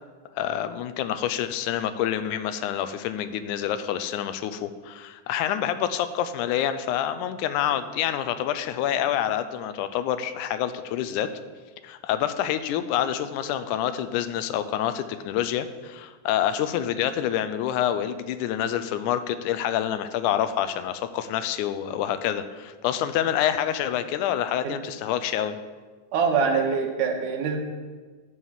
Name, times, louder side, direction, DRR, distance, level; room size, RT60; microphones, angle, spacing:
voice 1, 0.4-11.3 11.8-25.6, left 10 dB, 85° left, 11 dB, 2.0 m, -27 dB
voice 2, 26.1-27.6, right 5 dB, 90° right, 3 dB, 2.7 m, -24 dB
10.5 x 4.8 x 7.3 m, 1.4 s
omnidirectional pair, 3.5 m